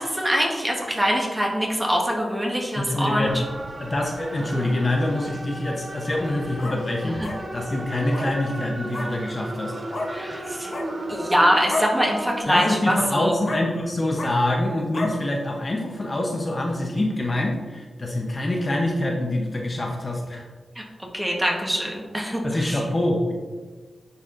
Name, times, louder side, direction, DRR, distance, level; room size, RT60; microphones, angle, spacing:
voice 1, 0.0-3.3 7.0-7.3 10.1-10.7 11.1-13.4 20.7-22.9, equal, 10° right, -1 dB, 1.1 m, -24 dB
voice 2, 2.8-3.3 3.8-9.9 12.5-20.4 22.4-23.3, left 1 dB, 35° left, 0 dB, 0.7 m, -25 dB
sound 1, 3.3-12.4, right 1 dB, 25° right, 0.5 m, -35 dB
sound 2, 6.2-6.8 7.2-7.4 8.1-8.3 8.9-9.1 9.9-10.1 10.6-10.9 11.7-11.9 12.4-12.7 13.4-13.6 14.1-14.3 14.9-15.1, left 2 dB, 50° left, 1.1 m, -30 dB
9.8 x 4.2 x 2.5 m, 1.4 s
wide cardioid pair, 100°, 0 cm